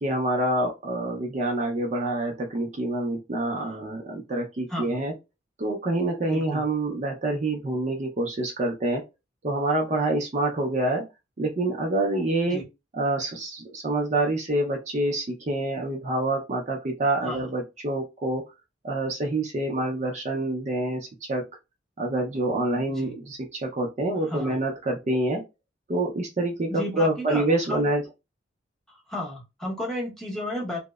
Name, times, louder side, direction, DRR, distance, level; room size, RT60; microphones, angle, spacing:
voice 1, 0.0-5.1 5.6-9.0 9.4-11.0 11.4-12.6 13.0-18.4 18.8-21.4 22.0-25.4 25.9-28.0, right 2 dB, 35° right, 0 dB, 0.4 m, -27 dB
voice 2, 6.3-6.6 12.5-12.6 17.2-17.4 22.9-23.1 24.2-24.6 26.7-27.9 29.1-30.8, left 1 dB, ahead, -3 dB, 0.7 m, -33 dB
2.7 x 2.0 x 2.2 m, 0.25 s
head